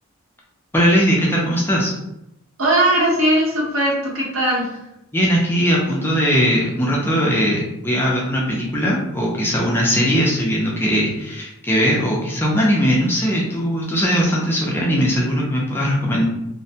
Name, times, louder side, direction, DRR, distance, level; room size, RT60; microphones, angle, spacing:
voice 1, 0.7-1.9 5.1-16.2, equal, 10° left, -4 dB, 0.3 m, -19 dB
voice 2, 2.6-4.8, right 1 dB, 70° right, -4 dB, 0.8 m, -19 dB
2.5 x 2.1 x 2.7 m, 0.88 s
head